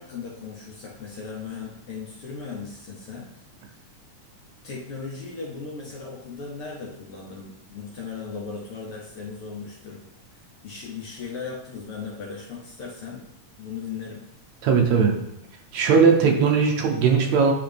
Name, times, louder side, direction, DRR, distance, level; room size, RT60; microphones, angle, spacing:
voice 1, 0.0-3.8 4.6-10.0 10.3-13.2 13.6-14.2, left 5 dB, 65° left, -4 dB, 1.5 m, -37 dB
voice 2, 14.6-15.1 15.7-17.5, right 5 dB, 75° right, 2 dB, 2.1 m, -18 dB
9.1 x 3.9 x 3.4 m, 0.81 s
omnidirectional pair, 3.3 m